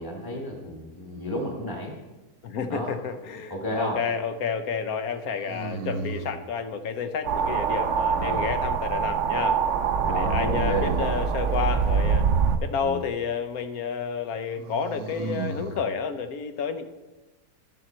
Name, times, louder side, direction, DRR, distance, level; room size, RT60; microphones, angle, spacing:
voice 1, 0.0-2.0 2.7-2.9 3.5-4.0 8.2-8.5 10.0-11.2 12.8-13.0, equal, 15° left, -1 dB, 1.4 m, -32 dB
voice 2, 2.4-9.6 10.1-12.3 12.6-16.9, left 6 dB, 60° left, 9 dB, 1.2 m, -30 dB
sound 1, 2.7-3.4 5.4-6.4 10.2-11.2 14.6-15.8, right 4 dB, 85° right, 1.4 m, -34 dB
sound 2, 7.2-12.6, right 6 dB, 60° right, 0.9 m, -24 dB
13.0 x 11.0 x 4.3 m, 1.1 s
omnidirectional pair, 1.9 m